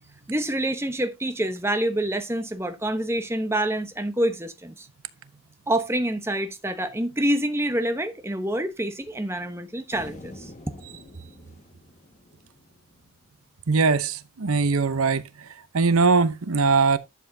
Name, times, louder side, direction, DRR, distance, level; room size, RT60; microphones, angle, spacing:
voice 1, 0.3-4.9 5.7-10.5, right 1 dB, 10° right, 0.9 m, -27 dB
sound 1, 9.9-13.3, left 1 dB, 35° left, 1.6 m, -46 dB
voice 2, 13.7-15.5 15.7-17.0, right 4 dB, 85° right, 0.8 m, -21 dB
11.5 x 7.4 x 2.7 m
head